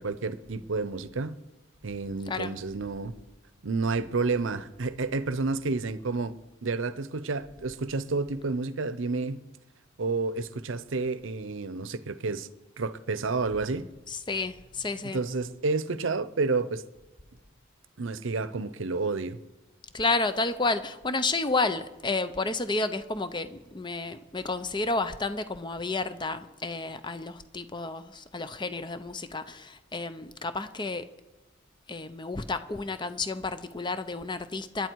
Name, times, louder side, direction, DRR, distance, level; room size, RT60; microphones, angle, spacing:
voice 1, 0.0-1.4 1.8-3.1 3.6-6.3 6.6-9.4 10.0-12.5 12.8-13.9 15.1-16.8 18.0-19.4, right 3 dB, 75° right, 0.7 m, -30 dB
voice 2, 14.1-15.2 19.9-31.1 31.9-34.9, left 3 dB, 25° left, 0.7 m, -31 dB
26.5 x 10.5 x 4.7 m
head